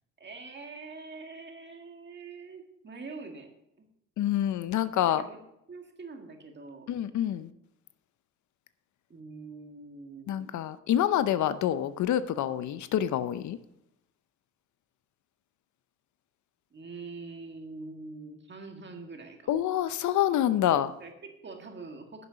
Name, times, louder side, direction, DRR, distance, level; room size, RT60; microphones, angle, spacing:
voice 1, 0.2-3.5 3.8-3.9 5.1-5.4 5.7-6.9 9.1-10.7 16.7-19.5 21.0-22.3, right 3 dB, 35° right, 4 dB, 1.9 m, -44 dB
voice 2, 4.2-5.2 6.9-7.5 10.3-13.6 19.5-20.9, left 11 dB, 70° left, 13 dB, 0.7 m, -27 dB
10.5 x 6.9 x 5.2 m, 0.82 s
cardioid pair, 90°, 30 cm